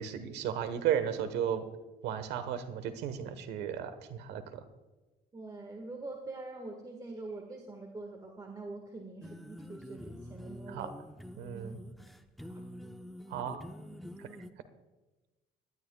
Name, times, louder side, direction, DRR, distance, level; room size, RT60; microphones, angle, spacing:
voice 1, 0.0-1.6 2.0-4.6 10.7-10.9 11.4-11.8 13.3-13.6 14.2-14.3, right 9 dB, 85° right, 11 dB, 1.3 m, -34 dB
voice 2, 5.3-10.9 11.5-11.7 12.4-12.6, right 2 dB, 20° right, 2 dB, 1.6 m, -44 dB
sound 1, 9.2-14.5, equal, ahead, 0.8 m, -47 dB
19.0 x 12.5 x 2.3 m, 1.1 s
cardioid pair, 110°, 17 cm